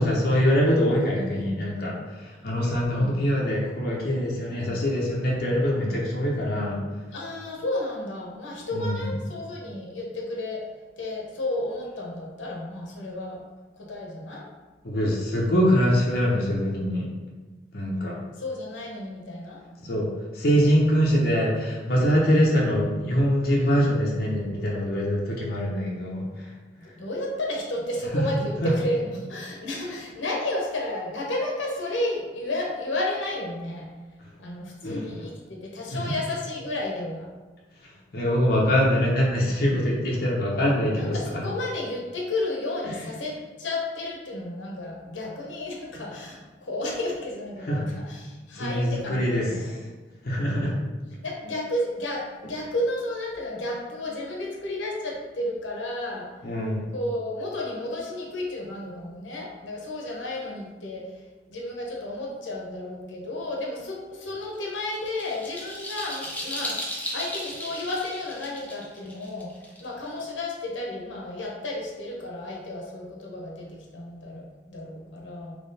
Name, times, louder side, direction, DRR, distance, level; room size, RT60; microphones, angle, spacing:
voice 1, 0.0-1.9 2.2-6.8 8.7-9.1 14.8-17.1 17.7-18.2 19.8-20.1 20.3-26.5 28.1-28.2 28.6-28.7 34.8-35.0 35.9-36.0 38.1-41.4 47.7-47.8 48.5-49.7 50.2-50.7 56.4-56.9, equal, 55° left, -4 dB, 0.8 m, -23 dB
voice 2, 0.7-1.0 2.9-3.2 7.1-10.6 11.0-13.4 13.7-14.5 18.3-19.6 22.2-22.5 23.5-23.8 26.8-33.9 34.4-37.3 40.8-49.7 50.5-50.8 51.2-56.3 56.9-66.8 67.1-75.5, left 1 dB, 90° left, -2 dB, 0.9 m, -32 dB
sound 1, 64.4-70.2, equal, 10° left, 0.6 m, -35 dB
3.8 x 3.0 x 4.0 m, 1.3 s
head